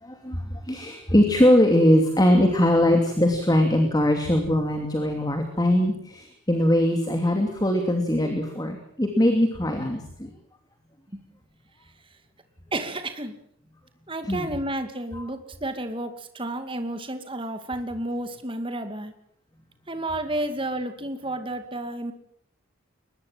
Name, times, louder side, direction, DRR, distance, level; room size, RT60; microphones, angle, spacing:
voice 1, 0.0-10.3 14.2-14.5, left 1 dB, 20° left, 4 dB, 2.7 m, -21 dB
voice 2, 12.7-13.3 14.1-19.1 19.9-22.1, right 1 dB, 25° right, 8 dB, 2.4 m, -31 dB
22.5 x 20.5 x 7.5 m, 0.68 s
head